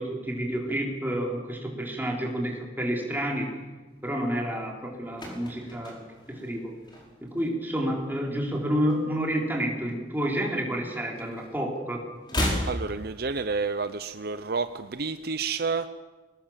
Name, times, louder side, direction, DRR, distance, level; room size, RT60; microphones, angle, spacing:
voice 1, 0.0-3.5 4.0-6.7 7.2-12.1, equal, 10° right, 0 dB, 4.2 m, -29 dB
sound 1, 4.8-7.5 7.7-8.0 8.3-9.8 10.1-11.4 11.7-13.8 14.0-14.1, left 1 dB, 25° left, 4.9 m, -34 dB
voice 2, 12.7-15.9, right 4 dB, 60° right, 11 dB, 0.7 m, -30 dB
24.5 x 19.0 x 7.4 m, 1.2 s
head